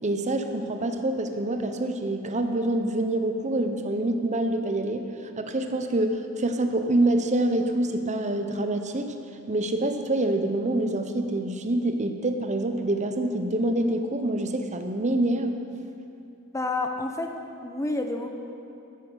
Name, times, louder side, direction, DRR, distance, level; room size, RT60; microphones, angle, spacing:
voice 1, 0.0-5.1 5.4-9.2 9.5-15.6, right 1 dB, 35° right, 6 dB, 0.8 m, -26 dB
voice 2, 16.5-17.3 17.6-18.3, left 2 dB, 15° left, 4 dB, 0.9 m, -29 dB
13.0 x 10.5 x 5.6 m, 2.7 s
head